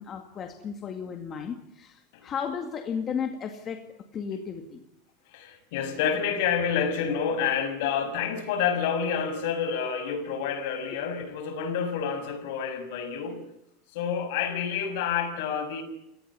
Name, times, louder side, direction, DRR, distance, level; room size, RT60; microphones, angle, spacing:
voice 1, 0.0-4.8, left 7 dB, 25° left, 6 dB, 2.1 m, -34 dB
voice 2, 5.3-13.4 13.9-15.8, left 7 dB, 60° left, 11 dB, 6.0 m, -28 dB
28.5 x 18.0 x 9.7 m, 0.81 s
supercardioid pair, 165°, 0 cm